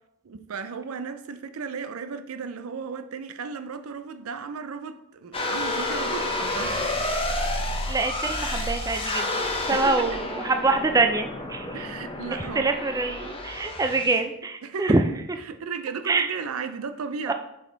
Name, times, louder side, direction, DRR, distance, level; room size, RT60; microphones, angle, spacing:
voice 1, 0.2-7.1 9.7-10.1 11.7-12.9 14.6-15.0 15.4-17.3, right 5 dB, 80° right, 0.5 m, -35 dB
sound 1, 5.3-14.2, left 2 dB, 25° left, 0.8 m, -30 dB
voice 2, 7.9-11.8 12.4-15.0 16.1-16.3 17.3-17.4, right 3 dB, 15° right, 0.4 m, -25 dB
5.7 x 4.9 x 3.9 m
head